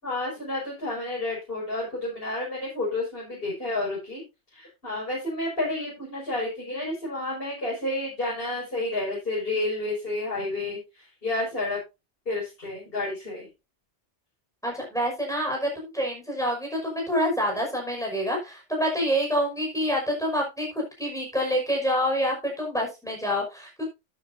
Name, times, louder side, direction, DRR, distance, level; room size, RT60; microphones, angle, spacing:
voice 1, 0.0-4.2 4.5-11.8 12.3-13.5, left 2 dB, 55° left, -5 dB, 5.8 m, -30 dB
voice 2, 14.6-23.9, equal, 5° left, 0 dB, 5.6 m, -27 dB
12.5 x 9.5 x 2.7 m, 0.25 s
omnidirectional pair, 1.2 m